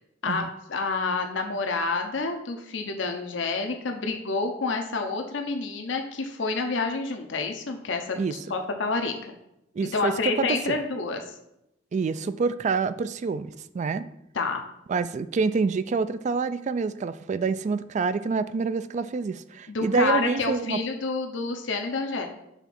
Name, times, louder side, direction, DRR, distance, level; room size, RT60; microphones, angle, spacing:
voice 1, 0.7-9.1 9.8-11.3 14.3-14.6 19.7-22.3, left 4 dB, 75° left, 4 dB, 0.7 m, -28 dB
voice 2, 9.7-10.8 11.9-14.1 14.9-20.8, right 4 dB, 40° right, 13 dB, 0.3 m, -27 dB
5.7 x 3.5 x 5.9 m, 0.83 s
head